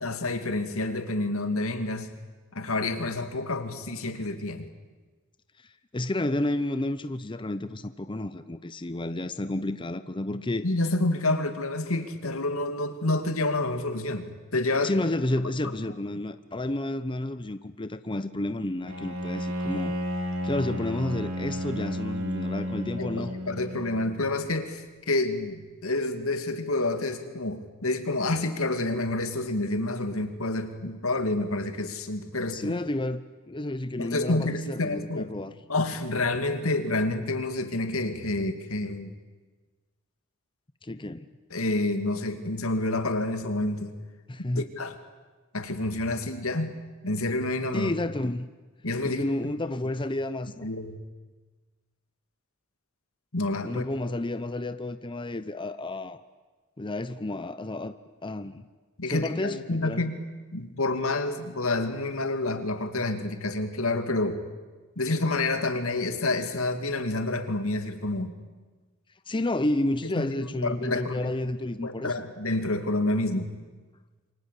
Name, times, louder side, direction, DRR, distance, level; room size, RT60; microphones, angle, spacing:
voice 1, 0.0-2.1 2.5-4.7 10.6-14.9 15.6-15.7 23.0-32.8 34.0-35.3 35.7-39.1 41.5-43.9 44.6-44.9 45.5-46.8 47.0-47.9 48.8-49.2 50.6-51.0 53.3-53.8 59.0-60.2 60.5-64.4 65.0-68.4 70.2-71.3 71.8-73.5, left 2 dB, 90° left, 2.6 m, -28 dB
voice 2, 5.9-10.6 14.8-20.0 20.4-23.3 32.5-33.2 33.5-35.5 40.8-41.3 44.3-44.7 47.7-48.5 49.0-50.7 53.6-56.2 56.8-57.9 58.2-58.6 59.1-60.0 69.3-72.1, left 1 dB, 25° left, 0.8 m, -31 dB
Bowed string instrument, 18.9-24.2, equal, 80° right, 4.0 m, -32 dB
28.0 x 24.5 x 8.4 m
head